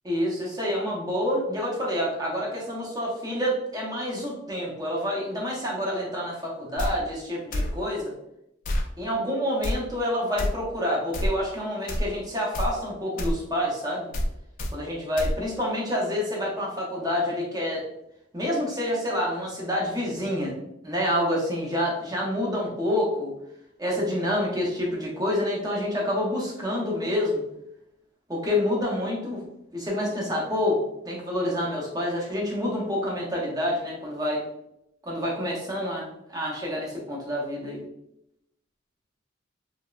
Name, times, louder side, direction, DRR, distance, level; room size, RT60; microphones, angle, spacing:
voice 1, 0.0-8.1 9.0-14.1 14.7-17.9 18.3-20.5 20.8-23.3 23.8-27.4 28.3-29.4 29.7-34.4 35.0-37.8, left 1 dB, 20° right, -3 dB, 0.6 m, -28 dB
sound 1, 6.8-6.9 7.5-7.7 8.6-8.9 9.6-9.8 10.4-10.5 11.1-11.3 11.9-12.1 12.5-12.7 13.2-13.4 14.1-14.3 14.6-14.7 15.2-15.3, left 1 dB, 40° left, 0.4 m, -26 dB
2.9 x 2.0 x 2.3 m, 0.81 s
head